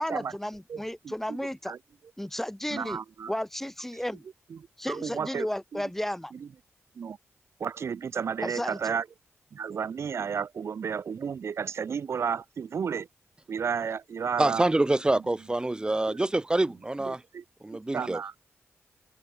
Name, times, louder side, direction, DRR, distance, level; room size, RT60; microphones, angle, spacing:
voice 1, 0.0-1.8 2.2-3.0 3.3-4.2 4.8-6.3 8.4-8.9, left 1 dB, 5° left, 3.5 m, -33 dB
voice 2, 0.7-1.8 2.7-3.3 3.9-4.0 4.5-5.8 6.3-6.5 7.0-7.2 7.6-9.1 9.5-13.1 13.5-14.7 17.0-17.4 17.9-18.4, right 6 dB, 65° right, 2.4 m, -33 dB
voice 3, 14.4-17.2 17.6-18.2, right 2 dB, 15° right, 0.8 m, -26 dB
open air
cardioid pair, 95°, 5 cm